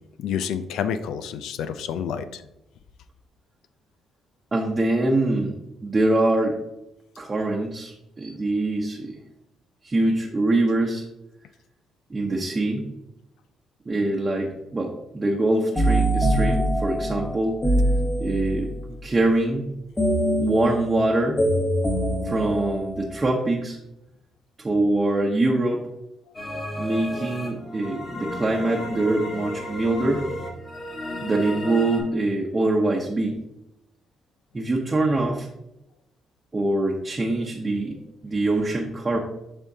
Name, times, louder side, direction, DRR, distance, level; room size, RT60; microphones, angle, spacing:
voice 1, 0.2-2.4, left 8 dB, 85° left, 11 dB, 0.4 m, -29 dB
voice 2, 4.5-5.6 5.8-6.5 7.2-9.1 9.8-11.0 12.1-12.8 13.9-17.6 18.2-19.6 20.4-21.4 22.2-23.8 24.6-25.9 26.8-30.2 31.2-33.4 34.5-35.5 36.5-39.2, right 2 dB, 25° right, -1 dB, 0.9 m, -24 dB
sound 1, 15.8-18.7 20.0-23.3, right 1 dB, 20° left, 1.1 m, -23 dB
sound 2, 26.3-32.0, left 1 dB, 40° left, 1.7 m, -33 dB
10.5 x 3.6 x 2.8 m, 0.87 s
cardioid pair, 90°, 0 cm